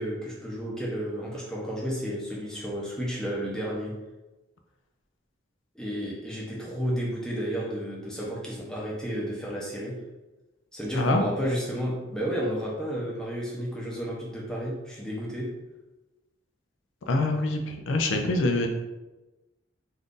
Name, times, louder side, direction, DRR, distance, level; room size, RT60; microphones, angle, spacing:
voice 1, 0.0-3.9 5.7-10.0 10.7-15.5, equal, 5° left, -6 dB, 0.7 m, -32 dB
voice 2, 17.1-18.7, left 2 dB, 85° left, 4 dB, 0.4 m, -25 dB
2.5 x 2.5 x 3.6 m, 1.1 s
head